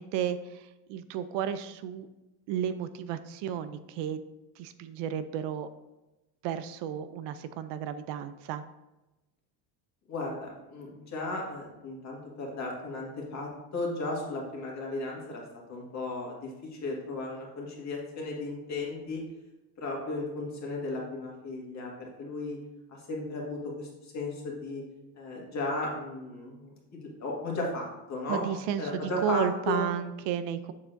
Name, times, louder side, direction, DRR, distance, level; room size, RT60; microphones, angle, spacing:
voice 1, 0.0-2.1 2.5-4.2 4.6-5.7 6.4-8.6 28.3-30.7, right 9 dB, 65° right, 12 dB, 0.5 m, -33 dB
voice 2, 10.1-15.4 15.7-19.2 19.8-22.6 22.9-24.8 25.2-28.4 28.8-29.8, left 2 dB, 35° left, -2 dB, 1.8 m, -35 dB
7.2 x 6.6 x 2.6 m, 1.0 s
cardioid pair, 145°, 45 cm